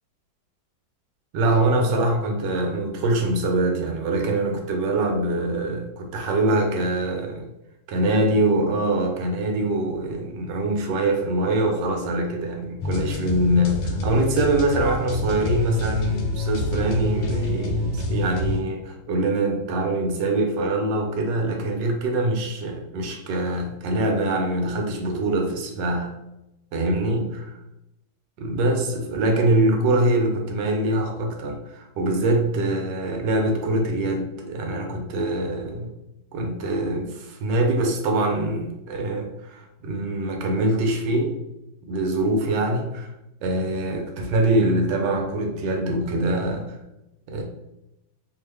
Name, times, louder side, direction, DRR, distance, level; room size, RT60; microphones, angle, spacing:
voice 1, 1.3-7.5 7.9-26.1 26.7-27.6 28.4-35.9 36.3-41.4 41.9-43.1 43.4-46.8 47.3-47.4, right 1 dB, 75° right, 3 dB, 1.2 m, -24 dB
sound 1, 12.8-18.6, left 2 dB, 80° left, 1.3 m, -27 dB
3.2 x 2.1 x 3.3 m, 0.89 s
omnidirectional pair, 2.1 m